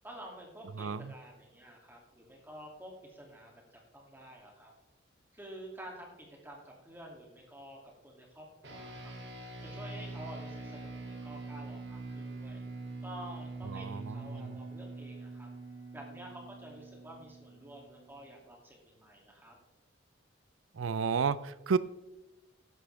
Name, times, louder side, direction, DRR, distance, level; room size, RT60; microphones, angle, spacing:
voice 1, 0.0-4.7 5.3-9.2 9.6-12.6 13.0-15.5 15.9-19.5, right 1 dB, 10° right, 2.5 m, -50 dB
voice 2, 0.8-1.1 13.7-14.4 20.8-21.8, right 5 dB, 90° right, 0.5 m, -32 dB
sound 1, 8.6-18.3, right 3 dB, 60° right, 2.5 m, -44 dB
14.5 x 11.0 x 3.4 m
head